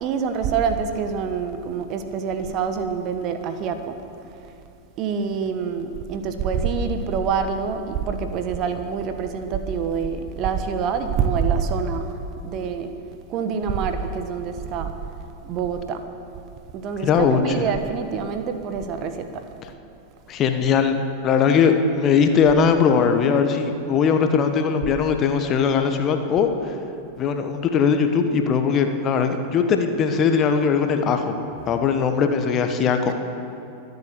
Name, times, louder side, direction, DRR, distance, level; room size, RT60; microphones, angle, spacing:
voice 1, 0.0-4.0 5.0-12.2 12.4-12.9 13.3-14.9 15.4-16.0 16.7-19.4 33.0-33.1, right 6 dB, 40° right, 8 dB, 1.2 m, -26 dB
voice 2, 17.0-17.7 20.3-26.8 27.2-31.3 31.7-33.1, left 6 dB, 30° left, 6 dB, 1.4 m, -20 dB
24.5 x 8.3 x 6.9 m, 2.9 s
figure-of-eight pair, 90°, 0 cm